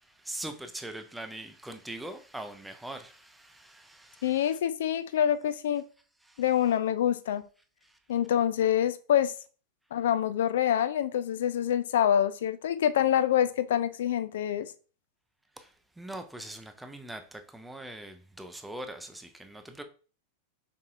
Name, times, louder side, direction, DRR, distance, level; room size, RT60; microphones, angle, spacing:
voice 1, 0.0-4.6 6.2-6.4 7.8-8.0 15.6-19.8, right 1 dB, 5° right, 0.6 m, -42 dB
voice 2, 4.2-5.9 6.4-7.4 8.1-9.3 9.9-14.7, left 10 dB, 60° left, 0.4 m, -26 dB
5.5 x 3.7 x 2.5 m
figure-of-eight pair, 90°, 0 cm